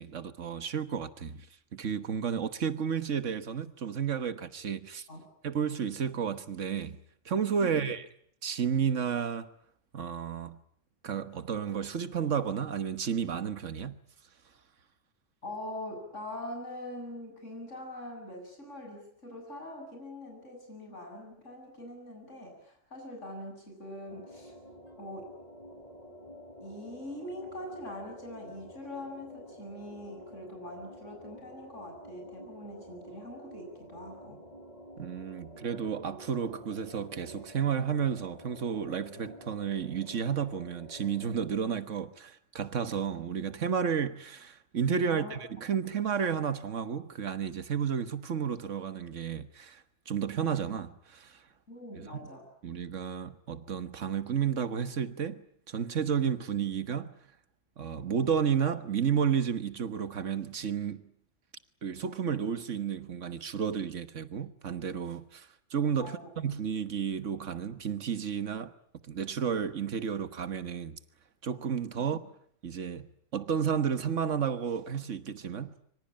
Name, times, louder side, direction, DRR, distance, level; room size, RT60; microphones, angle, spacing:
voice 1, 0.0-1.5 1.7-5.1 5.4-7.0 7.2-8.0 8.4-9.5 9.9-10.6 11.0-14.0 35.0-51.4 52.0-52.2 52.6-57.1 57.8-61.0 61.8-68.7 69.1-71.0 71.4-72.2 72.6-73.1 73.3-75.8, right 7 dB, 80° right, 1.7 m, -32 dB
voice 2, 15.4-24.5 25.0-25.3 26.6-34.4 45.0-45.4 51.7-52.4 66.0-66.3 72.0-72.1, left 1 dB, 80° left, 8.5 m, -43 dB
sound 1, 24.1-41.5, equal, 30° left, 7.4 m, -49 dB
25.5 x 24.5 x 8.7 m
omnidirectional pair, 1.3 m